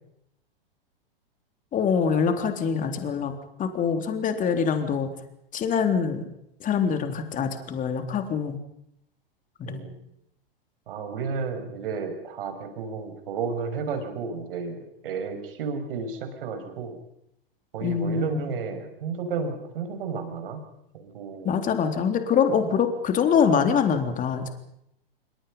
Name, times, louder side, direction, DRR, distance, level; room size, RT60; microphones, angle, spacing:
voice 1, 1.7-3.3 3.6-5.1 5.5-6.3 6.6-8.6 9.7-9.8 17.8-18.4 21.5-24.5, left 6 dB, 25° left, 7 dB, 3.6 m, -24 dB
voice 2, 9.7-10.0 10.9-17.0 17.7-20.6 20.9-21.6, right 5 dB, 65° right, 6 dB, 6.4 m, -32 dB
27.0 x 25.0 x 5.6 m, 0.78 s
hypercardioid pair, 105°, 30 cm